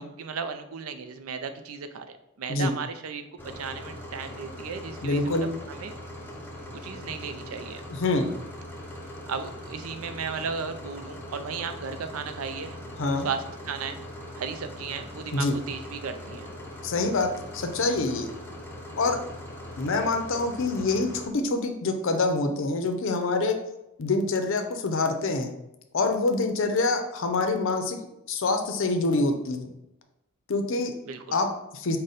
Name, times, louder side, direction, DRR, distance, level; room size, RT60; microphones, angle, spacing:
voice 1, 0.0-3.3 3.5-5.9 6.7-7.8 9.3-12.8 13.2-14.0 14.4-16.5 31.1-31.4, right 5 dB, 70° right, 9 dB, 0.4 m, -35 dB
sound 1, 3.4-21.3, left 1 dB, 10° left, 0.5 m, -41 dB
voice 2, 5.0-5.5 7.9-8.3 13.0-13.3 15.3-15.5 16.8-18.3 19.0-19.2 19.8-23.6 24.0-25.5 25.9-28.0 28.3-29.7 30.5-30.9 31.3-32.0, left 3 dB, 60° left, 6 dB, 0.5 m, -26 dB
5.0 x 2.1 x 4.1 m, 0.89 s
head